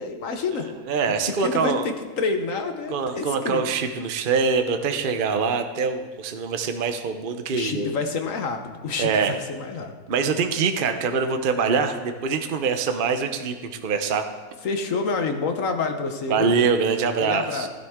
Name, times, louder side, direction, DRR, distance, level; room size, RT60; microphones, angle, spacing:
voice 1, 0.0-0.7 1.4-3.6 7.5-9.9 14.6-16.6 17.2-17.7, left 4 dB, 60° left, 6 dB, 1.3 m, -28 dB
voice 2, 0.9-1.9 2.9-7.9 9.0-9.4 10.1-14.2 16.3-17.7, right 5 dB, 45° right, 7 dB, 0.7 m, -24 dB
16.0 x 10.5 x 3.6 m, 1.4 s
omnidirectional pair, 1.7 m